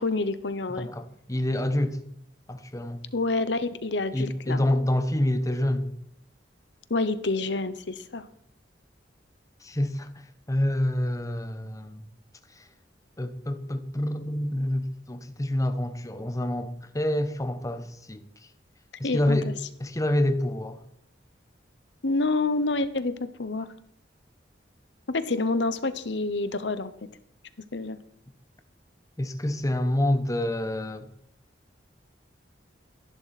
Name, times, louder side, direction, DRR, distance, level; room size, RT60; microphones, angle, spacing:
voice 1, 0.0-0.9 3.1-4.6 6.9-8.3 19.0-19.5 22.0-23.7 25.1-26.9 27.7-28.0, left 3 dB, 70° left, 1.0 m, -28 dB
voice 2, 0.8-2.0 2.5-3.0 4.1-5.9 9.6-12.0 12.6-12.7 13.2-18.2 19.0-19.5 19.8-20.8 29.2-31.1, left 1 dB, 20° left, 1.0 m, -27 dB
14.5 x 11.0 x 4.3 m
head